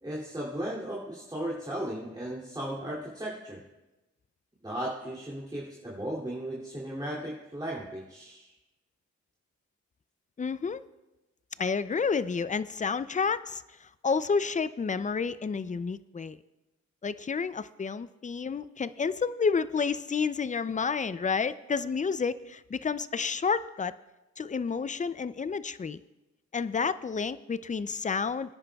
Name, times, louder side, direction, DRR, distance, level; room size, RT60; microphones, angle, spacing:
voice 1, 0.0-3.6 4.6-8.5, right 1 dB, 15° right, -5 dB, 2.7 m, -36 dB
voice 2, 10.4-10.8 11.6-16.4 17.0-24.0 24.4-26.0 26.5-28.5, left 5 dB, 25° left, 15 dB, 0.4 m, -30 dB
22.0 x 9.9 x 2.3 m, 1.0 s
cardioid pair, 65°, 29 cm